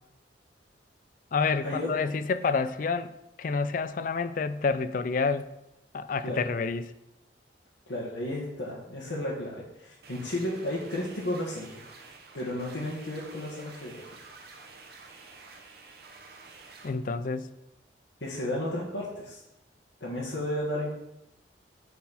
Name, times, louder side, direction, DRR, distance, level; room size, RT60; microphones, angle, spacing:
voice 1, 1.3-3.1 3.4-5.5 5.9-6.9 16.8-17.5, left 4 dB, 50° left, 12 dB, 0.4 m, -28 dB
voice 2, 7.9-11.8 12.3-14.1 18.2-19.4 20.0-20.9, left 1 dB, 80° left, -6 dB, 1.6 m, -33 dB
sound 1, 10.0-16.9, right 3 dB, 55° right, 0.9 m, -50 dB
9.4 x 4.2 x 4.2 m, 0.87 s
head